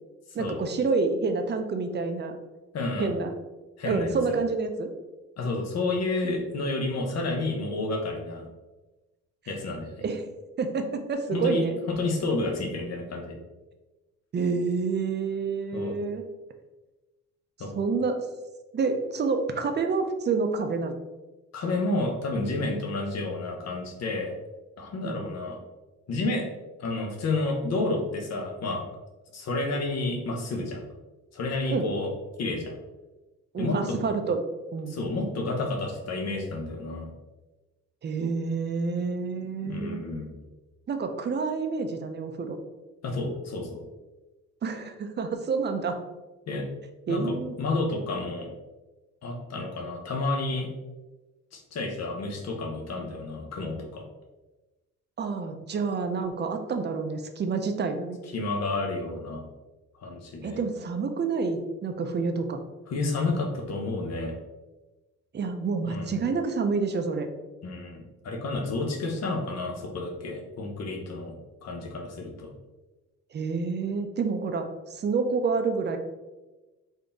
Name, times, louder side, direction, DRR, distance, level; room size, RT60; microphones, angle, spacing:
voice 1, 0.3-2.3 3.0-3.3 3.9-4.9 10.0-10.3 10.6-11.8 14.3-16.2 17.7-18.3 18.7-20.9 25.0-25.2 31.7-31.9 33.5-34.4 34.7-35.0 38.0-40.0 40.9-42.6 44.6-46.0 47.1-47.5 55.2-58.2 60.4-62.6 65.3-67.3 73.3-76.0, right 4 dB, 35° right, 6 dB, 0.5 m, -28 dB
voice 2, 2.7-3.2 3.8-4.4 5.4-8.5 9.5-10.0 11.3-13.3 15.7-15.9 17.6-17.7 21.5-24.3 24.8-25.6 26.1-26.5 26.8-28.8 29.3-30.8 31.3-32.1 32.4-32.7 33.6-34.0 34.9-37.1 39.6-40.4 43.0-43.8 46.5-46.7 47.1-48.5 49.2-50.7 51.5-54.1 58.3-59.4 60.0-60.6 62.9-64.3 65.8-66.2 67.6-71.3 71.6-72.5, left 2 dB, 60° left, 2 dB, 0.9 m, -30 dB
3.9 x 2.7 x 3.5 m, 1.1 s
cardioid pair, 90°, 30 cm